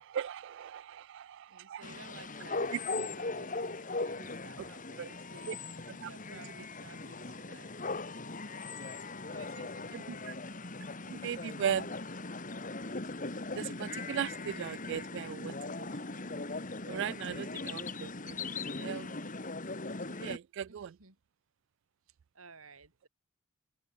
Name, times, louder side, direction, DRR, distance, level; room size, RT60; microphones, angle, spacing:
voice 1, 0.0-1.8 5.0-5.1 5.5-5.6 6.0-6.1 9.9-10.3 11.0-11.9 13.6-15.9 16.1-16.4 16.9-18.4 18.8-19.2 20.1-20.9, right 8 dB, 60° right, 0.3 m, -38 dB
voice 2, 1.5-3.8 4.1-5.5 6.0-7.7 9.3-10.3 20.7-21.1 22.4-23.1, right 4 dB, 85° right, 4.3 m, -55 dB
sound 1, 1.8-20.4, left 3 dB, 40° left, 2.2 m, -39 dB
open air
head